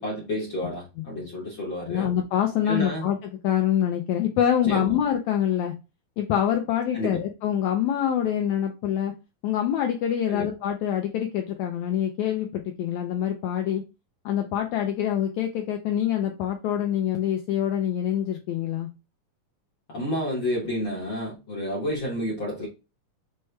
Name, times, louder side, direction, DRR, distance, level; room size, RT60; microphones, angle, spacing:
voice 1, 0.0-2.1 2.6-3.1 4.7-5.0 6.9-7.2 10.3-10.5 19.9-22.7, equal, 65° left, 1.1 m, -30 dB
voice 2, 1.8-5.7 6.2-9.1 9.4-13.8 14.2-18.9, left 10 dB, 85° left, 1.6 m, -25 dB
6.2 x 2.2 x 3.1 m
omnidirectional pair, 3.7 m